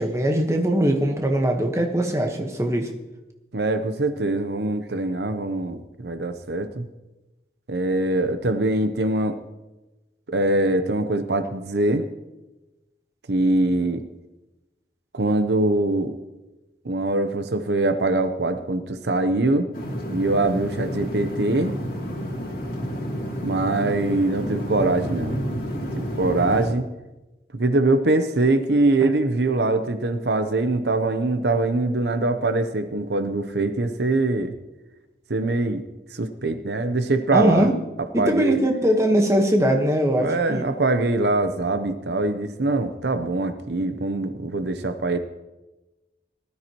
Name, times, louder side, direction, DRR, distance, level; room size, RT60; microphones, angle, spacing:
voice 1, 0.0-2.9 29.0-29.1 37.3-37.8 38.1-40.7, right 1 dB, 15° right, 3 dB, 1.3 m, -21 dB
voice 2, 3.5-6.9 7.7-9.4 10.3-12.0 13.3-14.0 15.1-16.2 16.8-19.7 20.1-21.7 23.4-25.4 26.0-26.9 27.5-34.5 35.3-35.8 36.1-37.7 38.2-38.6 40.2-45.2, right 2 dB, 75° right, 9 dB, 0.8 m, -23 dB
sound 1, 19.7-26.7, equal, 55° left, 2.9 m, -30 dB
19.0 x 13.0 x 3.0 m, 1.0 s
head